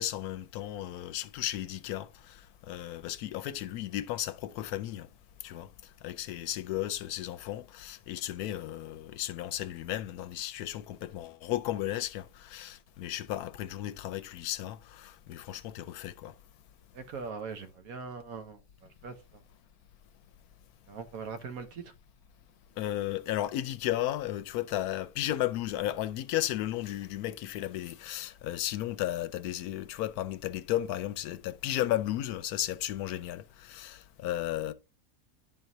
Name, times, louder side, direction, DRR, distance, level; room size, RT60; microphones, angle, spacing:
voice 1, 0.0-5.1 5.4-5.7 6.0-16.3 22.8-34.7, left 13 dB, 80° left, 1.1 m, -34 dB
voice 2, 16.9-19.4 20.9-21.9, right 5 dB, 70° right, 1.4 m, -41 dB
11.0 x 4.6 x 2.7 m
omnidirectional pair, 1.6 m